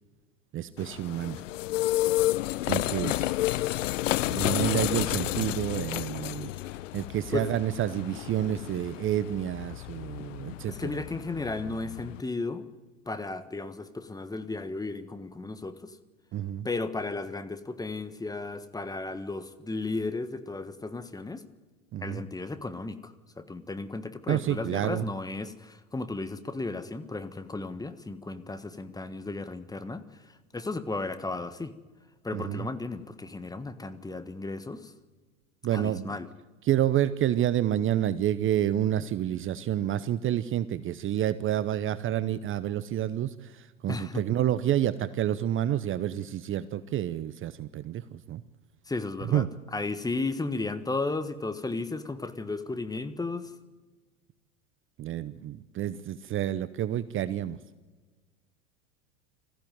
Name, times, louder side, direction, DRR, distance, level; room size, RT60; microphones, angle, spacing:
voice 1, 0.5-1.4 2.6-3.2 4.3-6.5 6.9-10.9 16.3-16.7 21.9-22.2 24.3-25.0 32.3-32.7 35.6-36.1 36.6-48.4 49.3-49.5 55.0-57.6, right 11 dB, 35° right, 15 dB, 0.8 m, -29 dB
sound 1, 0.8-12.2, left 16 dB, 75° left, 0.6 m, -31 dB
voice 2, 10.7-12.7 13.1-16.0 16.6-21.4 22.0-30.0 30.5-31.7 32.2-34.9 35.7-36.3 43.9-44.2 48.9-49.5 49.7-53.5, left 3 dB, 10° left, 11 dB, 1.4 m, -34 dB
20.0 x 15.0 x 9.4 m, 1.3 s
hypercardioid pair, 90°, 38 cm